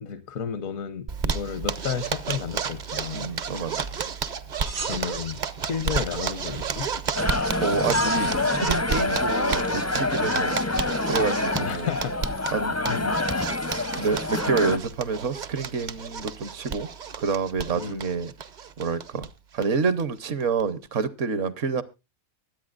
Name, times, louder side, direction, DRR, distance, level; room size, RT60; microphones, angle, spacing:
voice 1, 0.0-3.3 4.8-6.9 11.5-12.5 12.8-13.2 17.7-18.0, left 7 dB, 75° left, 12 dB, 1.2 m, -32 dB
Zipper (clothing), 1.1-19.3 19.6-19.7 20.0-20.1 20.4-20.9, right 6 dB, 45° right, 0.6 m, -32 dB
voice 2, 3.1-3.8 7.6-10.5 11.0-11.9 12.5-12.7 14.0-16.9 17.2-18.3 18.8-19.3 19.5-21.8, right 5 dB, 65° right, 15 dB, 1.1 m, -28 dB
sound 1, 4.6-5.6 7.8-8.3, right 5 dB, 85° right, 1.9 m, -36 dB
sound 2, 7.2-14.8, left 2 dB, 20° left, 0.4 m, -26 dB
23.5 x 8.3 x 2.4 m, 0.26 s
omnidirectional pair, 1.4 m